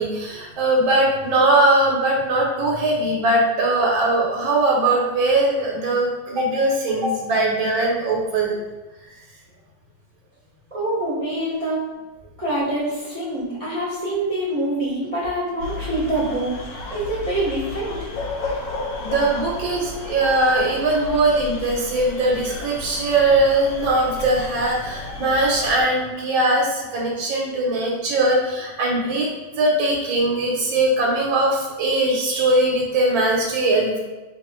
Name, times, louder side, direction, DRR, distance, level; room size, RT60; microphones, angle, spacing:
voice 1, 0.0-8.6 19.0-29.3 29.6-34.0, right 2 dB, 90° right, -2 dB, 1.4 m, -20 dB
voice 2, 10.7-11.8 12.4-16.6 16.9-18.1, right 1 dB, 30° right, -10 dB, 0.6 m, -25 dB
sound 1, 15.6-25.8, left 3 dB, 75° left, 1.2 m, -33 dB
3.1 x 2.4 x 4.2 m, 1.1 s
omnidirectional pair, 2.1 m